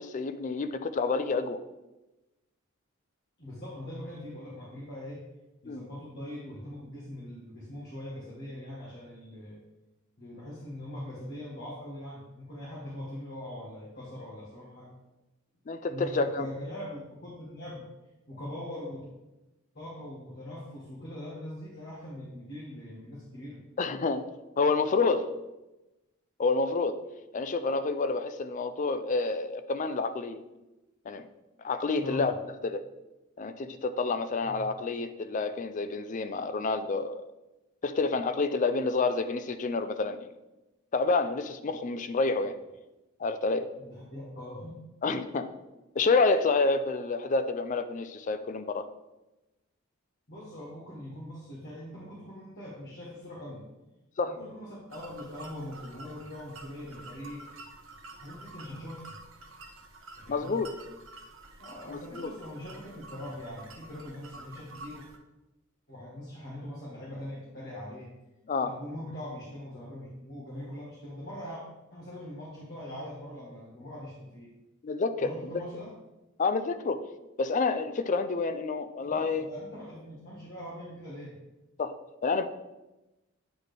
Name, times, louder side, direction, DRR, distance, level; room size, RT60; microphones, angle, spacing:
voice 1, 0.0-1.6 5.7-5.8 15.7-16.5 23.8-24.3 24.6-25.4 26.4-27.0 27.3-30.4 31.1-31.3 31.6-32.3 32.6-32.8 33.4-37.2 37.8-40.3 40.9-42.6 43.2-43.7 45.0-45.5 46.0-48.8 54.2-54.4 60.3-60.7 61.9-62.3 68.5-68.8 74.8-75.5 76.4-77.1 77.4-79.5 81.8-82.0 82.2-82.5, left 3 dB, 40° left, 10 dB, 0.4 m, -28 dB
voice 2, 3.4-5.2 5.6-9.6 10.2-14.9 15.9-17.9 18.3-19.0 19.7-23.6 32.0-32.3 34.4-34.7 43.8-44.8 50.3-53.6 54.3-57.4 58.2-59.1 60.2-60.6 61.6-65.0 65.9-68.1 68.6-71.6 71.9-74.5 75.2-75.9 79.0-81.4, left 1 dB, 55° left, -8 dB, 1.6 m, -42 dB
sound 1, 54.9-65.2, right 2 dB, 75° right, 0.8 m, -49 dB
8.9 x 4.1 x 3.3 m, 1.0 s
head